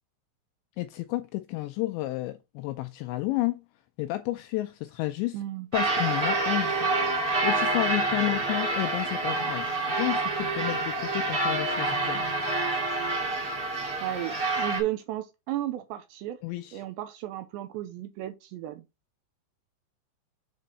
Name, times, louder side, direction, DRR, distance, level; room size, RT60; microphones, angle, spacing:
voice 1, 0.8-3.6 4.0-5.4 5.7-12.2 16.4-16.8, left 18 dB, 85° left, 2.5 m, -31 dB
voice 2, 5.3-5.7 14.0-16.4 16.7-18.8, right 13 dB, 80° right, 2.7 m, -34 dB
sound 1, 5.7-14.8, right 2 dB, 35° right, 1.7 m, -27 dB
7.6 x 4.5 x 4.0 m
omnidirectional pair, 5.6 m